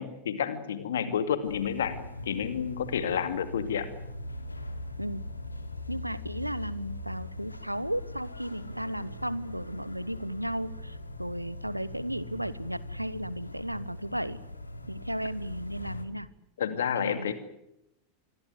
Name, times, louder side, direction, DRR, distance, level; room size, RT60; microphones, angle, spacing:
voice 1, 0.0-2.0 2.3-3.9 16.6-17.3, left 8 dB, 65° left, 10 dB, 2.4 m, -30 dB
sound 1, 1.4-16.0, left 1 dB, 85° left, 2.7 m, -41 dB
voice 2, 5.9-14.4 14.9-16.3 16.9-17.3, equal, 90° right, 19 dB, 1.0 m, -35 dB
27.0 x 21.5 x 8.0 m, 0.82 s
figure-of-eight pair, 85°, 0 cm